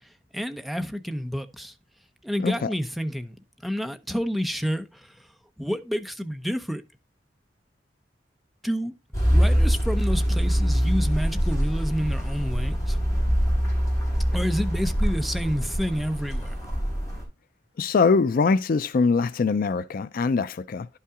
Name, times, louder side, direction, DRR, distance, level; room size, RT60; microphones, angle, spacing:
voice 1, 0.3-1.7 2.2-3.3 3.6-4.9 5.6-6.8 8.6-8.9 9.3-13.0 14.3-16.5, equal, ahead, 0.7 m, -29 dB
voice 2, 2.4-2.7 17.8-20.9, left 4 dB, 55° left, 0.4 m, -23 dB
sound 1, 9.1-17.2, equal, 15° left, 4.1 m, -24 dB
11.0 x 5.6 x 3.6 m
head